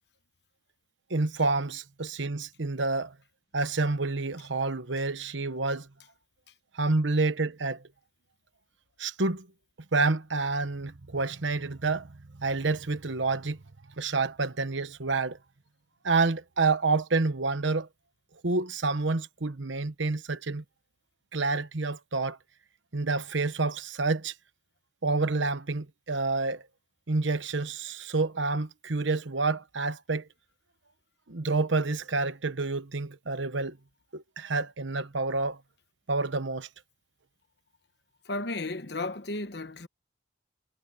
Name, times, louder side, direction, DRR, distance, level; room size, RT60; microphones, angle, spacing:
voice 1, 1.1-3.1 3.5-5.9 6.7-7.8 9.0-9.5 9.9-13.6 14.0-15.4 16.0-17.9 18.4-20.6 21.3-22.4 22.9-24.3 25.0-26.6 27.1-30.3 31.3-33.8 34.1-35.6 36.1-36.7, right 3 dB, 75° right, 1.1 m, -28 dB
voice 2, 38.3-39.9, left 2 dB, 55° left, 1.1 m, -34 dB
head